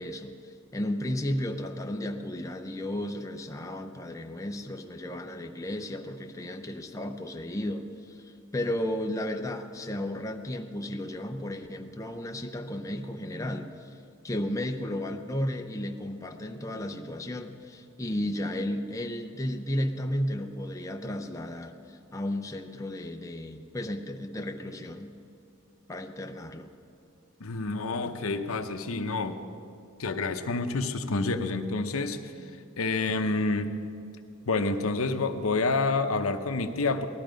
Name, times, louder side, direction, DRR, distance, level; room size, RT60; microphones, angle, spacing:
voice 1, 0.0-14.0 14.2-25.1 25.9-26.7, left 1 dB, 15° left, 3 dB, 0.7 m, -34 dB
voice 2, 27.4-29.4 30.0-32.2 32.8-33.8 34.5-37.1, left 3 dB, 75° left, 8 dB, 0.8 m, -28 dB
18.5 x 12.5 x 5.2 m, 2.6 s
head